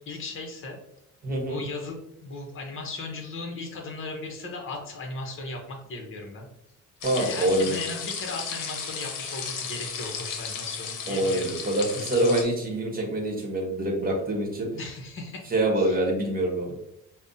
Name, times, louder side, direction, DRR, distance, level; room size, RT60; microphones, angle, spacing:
voice 1, 0.1-0.8 1.4-6.5 7.2-11.5 14.7-16.0, left 3 dB, 40° left, 2 dB, 0.8 m, -37 dB
voice 2, 1.2-1.6 7.0-7.7 11.1-14.7 15.5-16.7, right 1 dB, 25° right, 0 dB, 1.0 m, -25 dB
sound 1, 7.0-12.4, left 6 dB, 70° left, 0.7 m, -35 dB
5.2 x 2.1 x 2.6 m, 0.76 s
cardioid pair, 130°, 32 cm